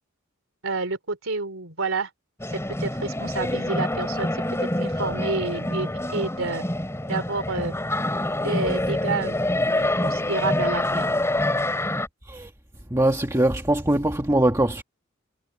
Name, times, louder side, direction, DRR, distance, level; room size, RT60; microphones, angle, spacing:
voice 1, 0.6-2.1 2.5-6.6 7.1-7.7 8.4-9.4 9.7-11.1, right 3 dB, 70° right, 3.5 m, -29 dB
sound 1, 2.4-12.1, left 1 dB, 15° left, 3.6 m, -26 dB
voice 2, 12.9-14.8, right 1 dB, 15° right, 1.6 m, -22 dB
head